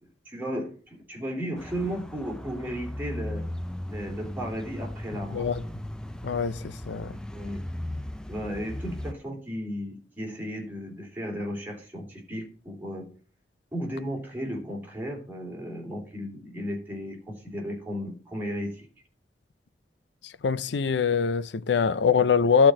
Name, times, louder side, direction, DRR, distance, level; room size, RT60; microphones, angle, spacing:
voice 1, 0.0-3.4 3.9-5.5 7.3-7.6 8.3-13.1 13.7-18.9, equal, 10° right, 3.1 m, -35 dB
sound 1, 1.6-9.1, left 1 dB, 5° left, 0.5 m, -37 dB
voice 2, 6.2-7.1 20.4-22.7, left 6 dB, 70° left, 0.5 m, -23 dB
12.0 x 4.4 x 7.4 m
head